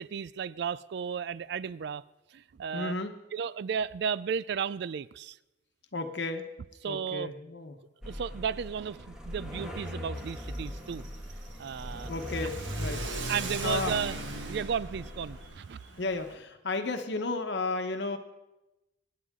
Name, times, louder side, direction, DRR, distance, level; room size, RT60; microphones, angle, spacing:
voice 1, 0.0-2.0 2.3-2.9 3.3-5.4 6.8-7.3 8.0-11.1 11.6-12.1 12.4-12.5 13.3-14.2 14.5-15.8, right 7 dB, 60° right, 19 dB, 0.4 m, -34 dB
voice 2, 2.7-3.1 5.9-6.5 6.9-7.7 12.1-13.0 13.6-14.0 16.0-18.2, left 3 dB, 65° left, 6 dB, 1.1 m, -33 dB
sound 1, 8.0-15.5, equal, 5° right, 1.7 m, -41 dB
Car / Accelerating revving vroom, 10.1-16.3, right 2 dB, 85° right, 1.5 m, -39 dB
24.5 x 9.5 x 3.7 m, 0.99 s
head